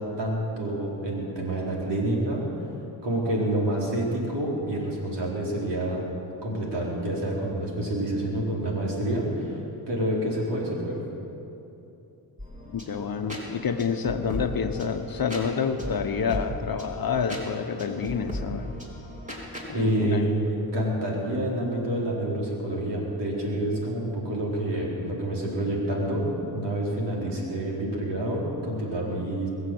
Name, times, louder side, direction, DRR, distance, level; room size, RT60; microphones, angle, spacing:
voice 1, 0.0-2.4 3.0-6.1 6.4-9.6 9.9-11.0 19.7-20.4 20.7-29.5, right 1 dB, 60° right, -3 dB, 4.7 m, -28 dB
sound 1, 12.4-19.7, left 1 dB, 15° right, 3.7 m, -37 dB
voice 2, 12.7-18.7 19.7-20.3, left 6 dB, 50° left, 7 dB, 1.1 m, -28 dB
21.5 x 7.6 x 7.9 m, 2.9 s
cardioid pair, 60°, 46 cm